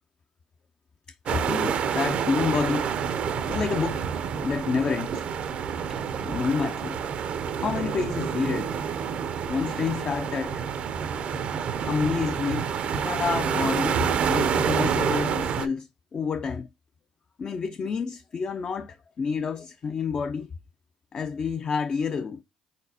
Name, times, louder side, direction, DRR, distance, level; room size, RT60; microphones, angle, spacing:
voice 1, 1.2-2.9 3.5-4.1 4.4-5.3 5.9-7.0 7.6-8.8 9.5-10.6 11.8-16.7 17.4-20.5 21.1-22.4, left 5 dB, 40° left, 0.4 m, -29 dB
sound 1, 1.3-15.7, right 7 dB, 60° right, 0.5 m, -28 dB
4.2 x 4.0 x 2.7 m
hypercardioid pair, 60°, 2 cm